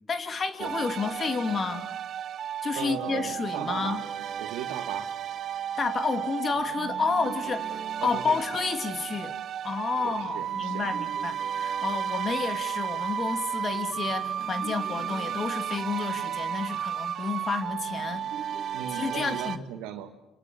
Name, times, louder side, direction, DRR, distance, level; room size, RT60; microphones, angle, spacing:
voice 1, 0.1-1.9 2.6-4.0 5.8-9.3 9.6-18.3 18.9-19.6, left 5 dB, 40° left, 8 dB, 2.8 m, -30 dB
sound 1, 0.6-19.6, right 9 dB, 60° right, 1.0 m, -33 dB
voice 2, 2.7-4.0 4.4-5.1 8.0-8.4 10.0-10.9 16.7-16.8 18.7-20.1, right 10 dB, 80° right, 7 dB, 2.3 m, -37 dB
29.5 x 26.5 x 7.2 m, 0.92 s
supercardioid pair, 60°, 0 cm